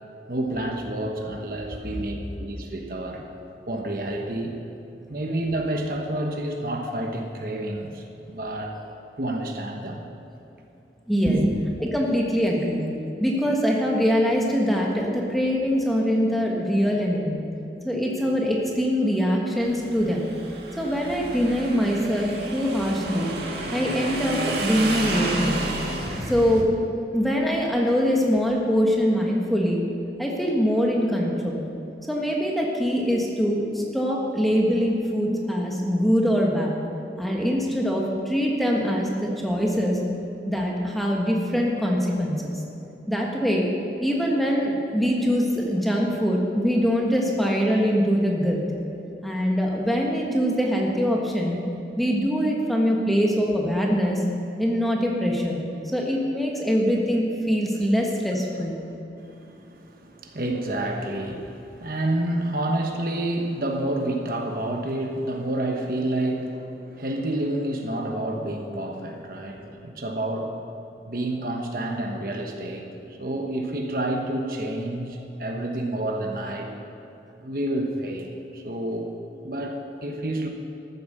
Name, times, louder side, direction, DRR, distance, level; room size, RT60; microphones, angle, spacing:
voice 1, 0.3-3.3 3.7-4.6 5.1-8.7 9.2-10.0 11.2-11.5 58.9-70.5 71.0-76.7 77.4-79.1 79.4-80.5, right 1 dB, 55° right, 2 dB, 1.2 m, -29 dB
voice 2, 11.1-11.4 11.8-12.8 13.2-17.4 17.8-20.3 20.8-23.3 23.7-25.6 26.3-26.7 27.0-29.8 30.2-31.6 32.1-36.7 37.2-40.0 40.5-42.5 43.1-43.7 44.0-48.6 49.2-51.6 52.0-54.2 54.6-55.6 55.9-58.8, equal, ahead, -2 dB, 1.4 m, -23 dB
Motorcycle / Engine, 19.6-26.6, right 2 dB, 70° right, 1.8 m, -31 dB
13.5 x 9.2 x 6.7 m, 2.9 s
head